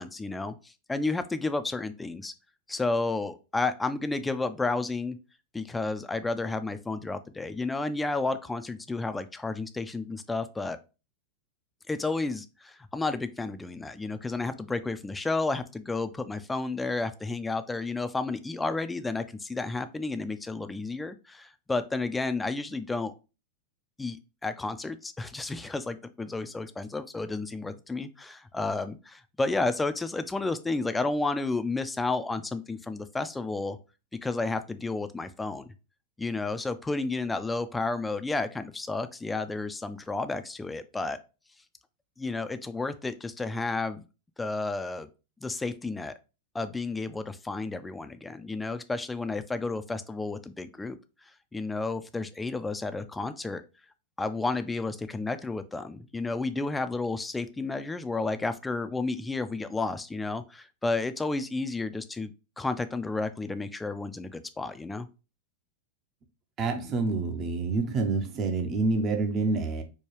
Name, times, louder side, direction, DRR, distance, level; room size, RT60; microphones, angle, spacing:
voice 1, 0.0-2.3 2.7-5.2 5.5-10.8 11.9-23.1 24.0-33.8 34.2-35.7 36.2-41.2 42.2-44.0 44.4-45.1 45.4-46.1 46.5-51.0 51.5-53.6 54.2-62.3 62.6-65.1, left 3 dB, 10° left, 0.4 m, -31 dB
voice 2, 66.6-69.8, right 3 dB, 35° right, 0.7 m, -27 dB
4.5 x 2.3 x 3.1 m
hypercardioid pair, 125°, 0 cm